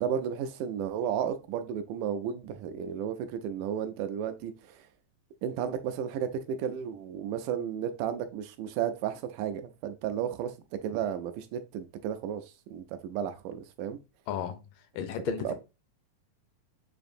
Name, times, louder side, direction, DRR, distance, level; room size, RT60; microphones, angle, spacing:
voice 1, 0.0-4.9 5.4-10.6 10.8-14.0 15.4-15.5, right 8 dB, 80° right, 1.8 m, -33 dB
voice 2, 14.3-14.6 15.0-15.5, left 9 dB, 80° left, 2.2 m, -33 dB
7.0 x 2.5 x 2.6 m
omnidirectional pair, 4.0 m